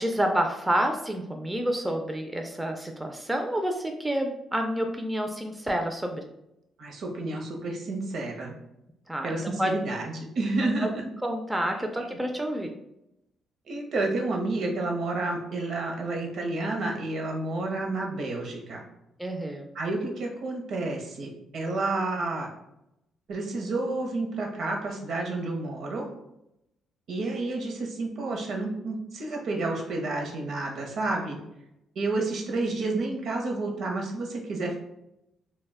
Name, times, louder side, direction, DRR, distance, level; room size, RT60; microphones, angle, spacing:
voice 1, 0.0-6.2 9.1-9.7 10.8-10.9 11.2-12.7 19.2-19.7, right 1 dB, 10° right, 3 dB, 0.3 m, -29 dB
voice 2, 6.8-8.5 9.2-11.0 13.7-18.8 19.7-22.5 23.3-26.1 27.1-31.4 32.0-34.8, right 2 dB, 65° right, 1 dB, 0.6 m, -30 dB
2.1 x 2.1 x 3.4 m, 0.84 s
cardioid pair, 90°, 0 cm